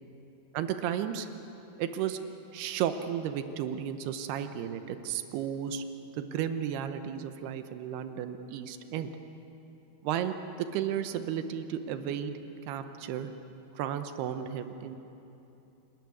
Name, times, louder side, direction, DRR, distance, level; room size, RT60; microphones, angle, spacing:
voice 1, 0.5-1.3 1.8-2.2 2.5-5.8 6.1-9.1 10.0-12.4 12.7-13.3 13.8-15.0, right 9 dB, 80° right, 9 dB, 2.9 m, -33 dB
26.5 x 13.5 x 9.5 m, 2.9 s
omnidirectional pair, 4.7 m